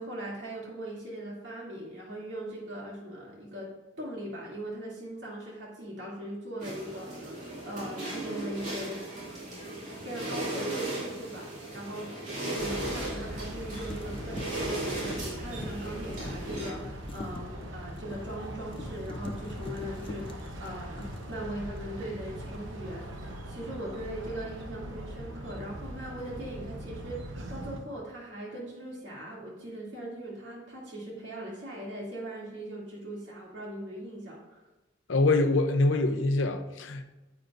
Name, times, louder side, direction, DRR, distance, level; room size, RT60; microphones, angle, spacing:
voice 1, 0.0-3.7 4.0-9.0 10.0-11.5 11.7-34.6, right 1 dB, 70° right, 2.6 m, -40 dB
sound 1, 6.6-16.7, right 1 dB, 40° right, 2.5 m, -37 dB
sound 2, 9.9-10.1 13.2-13.6 13.9-22.1 22.4-22.8, left 1 dB, 30° left, 0.5 m, -44 dB
sound 3, 12.6-27.8, equal, 85° right, 1.0 m, -41 dB
voice 2, 35.1-37.1, left 2 dB, 80° left, 0.6 m, -25 dB
9.4 x 7.9 x 2.6 m
head